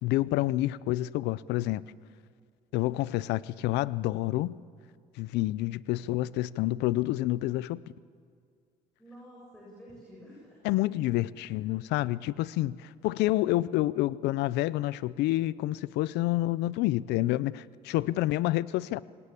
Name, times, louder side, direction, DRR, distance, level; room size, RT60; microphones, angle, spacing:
voice 1, 0.0-1.8 2.7-4.6 5.2-7.8 10.6-19.0, left 16 dB, 85° left, 0.6 m, -28 dB
voice 2, 9.0-10.6 11.5-11.7 17.9-18.6, equal, 5° left, 7.7 m, -51 dB
26.5 x 18.0 x 8.4 m
cardioid pair, 110°, 17 cm